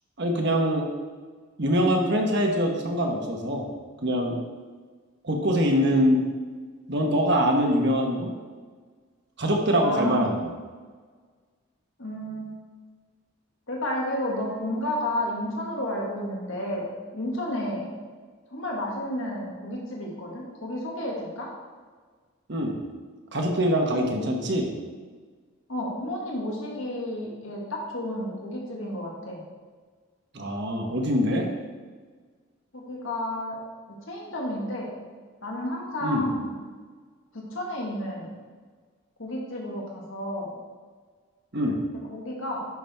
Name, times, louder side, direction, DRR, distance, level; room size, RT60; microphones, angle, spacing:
voice 1, 0.2-0.9 1.6-3.7 4.0-4.4 5.2-6.2 6.9-8.3 9.4-10.4 22.5-22.8 23.3-24.7 30.3-31.5 36.0-36.2 41.5-41.8, equal, 55° right, 2 dB, 1.2 m, -23 dB
voice 2, 9.8-10.3 12.0-12.6 13.7-17.9 18.5-21.5 25.7-29.4 32.7-33.6 34.1-34.9 35.4-36.4 37.3-38.3 39.2-40.5 42.1-42.7, left 1 dB, 70° left, -2 dB, 1.8 m, -31 dB
11.0 x 6.0 x 3.5 m, 1.5 s
head